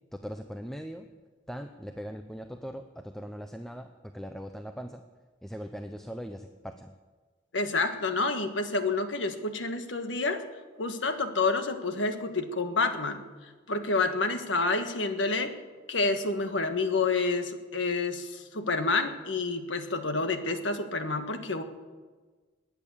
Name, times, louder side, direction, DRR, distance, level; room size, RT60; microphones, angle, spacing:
voice 1, 0.1-1.1 1.5-5.0 5.4-6.9, equal, ahead, 6 dB, 0.6 m, -40 dB
voice 2, 7.5-10.4 10.8-13.2 13.7-15.5 15.9-21.6, left 3 dB, 85° left, 7 dB, 1.5 m, -28 dB
20.5 x 9.1 x 7.0 m, 1.4 s
head